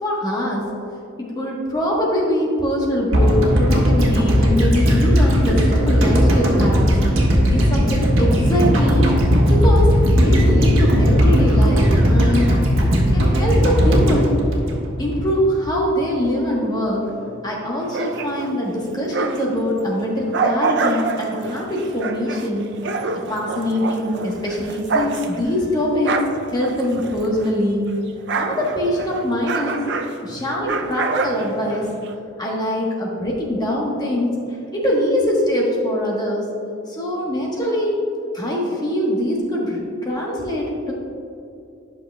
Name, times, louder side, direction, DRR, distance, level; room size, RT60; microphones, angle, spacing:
voice 1, 0.0-0.6 1.2-6.9 7.4-9.1 9.5-12.5 13.1-14.4 15.0-22.7 23.1-26.2 26.5-27.9 28.4-31.9 32.4-34.3 34.7-36.5 36.9-38.0 38.3-40.9, left 1 dB, 20° left, -3 dB, 1.1 m, -23 dB
sound 1, 3.1-15.3 15.6-15.7, equal, 85° right, 1.3 m, -16 dB
sound 2, 17.8-19.6 20.0-27.6 27.9-32.1, right 4 dB, 60° right, 0.4 m, -27 dB
11.0 x 6.2 x 2.2 m, 2.6 s
head